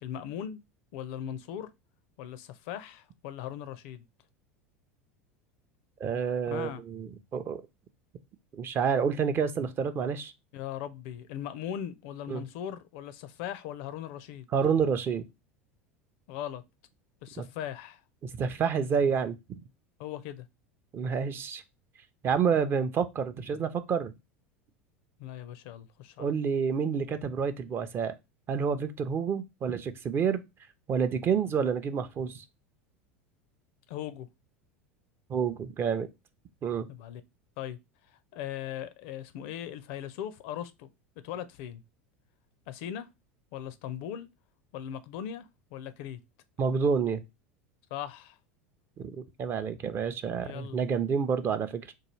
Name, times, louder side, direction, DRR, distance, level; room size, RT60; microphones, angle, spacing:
voice 1, 0.0-0.6 0.9-1.7 2.2-4.0 6.5-6.8 10.5-14.5 16.3-16.6 17.2-18.0 20.0-20.5 25.2-26.3 33.9-34.3 36.9-37.2 37.6-37.8 38.1-40.9 41.2-41.8 42.7-43.1 43.5-44.3 44.7-46.2 47.9-48.4 50.4-50.8, left 10 dB, 55° left, 0.4 m, -39 dB
voice 2, 6.0-7.6 8.5-10.3 12.3-12.4 14.5-15.2 17.4-17.5 18.2-19.6 20.9-21.6 22.2-24.1 26.2-28.1 28.5-30.4 30.9-32.4 35.3-36.1 36.6-36.9 46.6-47.2 49.0-51.9, right 6 dB, 35° right, 0.5 m, -29 dB
4.5 x 2.3 x 3.1 m
figure-of-eight pair, 80°, 7 cm